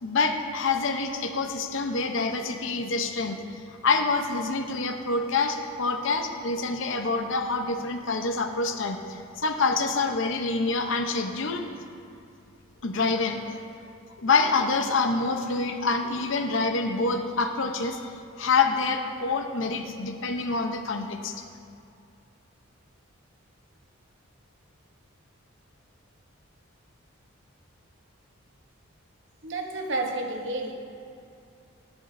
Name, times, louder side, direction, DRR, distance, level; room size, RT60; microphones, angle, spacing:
voice 1, 0.0-3.4 3.8-11.6 12.8-13.6 14.2-18.0 18.4-21.4, left 4 dB, 65° left, 6 dB, 0.7 m, -26 dB
voice 2, 29.4-30.7, right 2 dB, 60° right, 3 dB, 0.9 m, -30 dB
12.0 x 10.5 x 2.6 m, 2.5 s
head